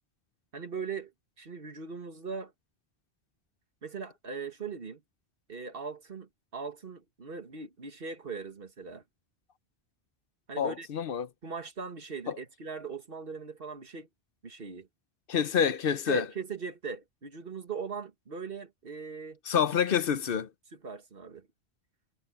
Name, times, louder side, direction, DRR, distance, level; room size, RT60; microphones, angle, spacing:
voice 1, 0.5-1.1 1.4-2.5 3.8-5.0 5.5-9.0 10.5-10.9 11.4-14.1 14.4-14.9 16.1-19.4 20.8-21.5, right 5 dB, 60° right, 1.9 m, -40 dB
voice 2, 10.6-11.3 12.3-12.4 15.3-16.3 19.5-20.5, left 7 dB, 60° left, 0.9 m, -27 dB
omnidirectional pair, 1.1 m